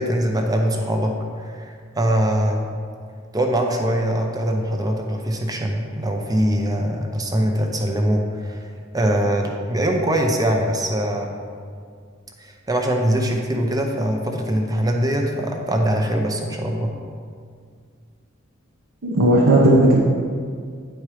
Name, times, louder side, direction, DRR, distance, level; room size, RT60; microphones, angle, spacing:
voice 1, 0.0-2.7 3.3-8.7 8.9-11.3 12.4-16.9, right 1 dB, 20° right, 2 dB, 0.7 m, -22 dB
voice 2, 19.0-20.0, right 1 dB, 70° right, -4 dB, 0.9 m, -14 dB
9.6 x 4.5 x 4.9 m, 2.1 s
head